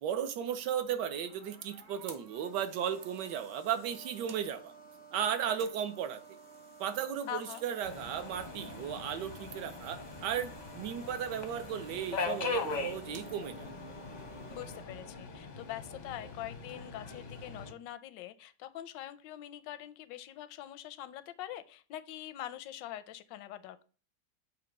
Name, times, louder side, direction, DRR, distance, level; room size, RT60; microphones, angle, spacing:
voice 1, 0.0-4.7 5.1-6.2 6.8-13.7, right 9 dB, 75° right, 10 dB, 1.3 m, -35 dB
sound 1, 0.9-14.8, right 4 dB, 35° right, 0.7 m, -53 dB
voice 2, 7.3-7.6 14.5-23.8, left 12 dB, 85° left, 13 dB, 1.3 m, -44 dB
Subway metro underground, 7.8-17.7, left 3 dB, 45° left, 0.5 m, -40 dB
7.8 x 2.9 x 5.2 m, 0.39 s
omnidirectional pair, 1.9 m